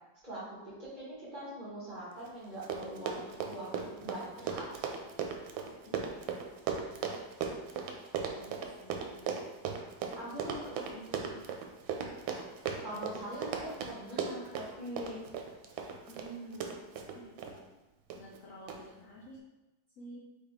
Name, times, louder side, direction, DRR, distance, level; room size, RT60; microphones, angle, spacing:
voice 1, 0.2-4.9 10.1-10.8 11.1-11.2 12.8-15.2, right 1 dB, 30° right, -8 dB, 1.2 m, -43 dB
Run, 2.3-2.4 2.5-17.5 18.1-18.4 18.7-18.8, right 6 dB, 80° right, 1.3 m, -37 dB
voice 2, 8.4-9.3 10.2-11.4 16.1-16.7 17.1-17.7 18.2-19.4 20.0-20.2, equal, 75° left, -3 dB, 0.7 m, -49 dB
4.3 x 3.4 x 3.6 m, 1.1 s
omnidirectional pair, 2.1 m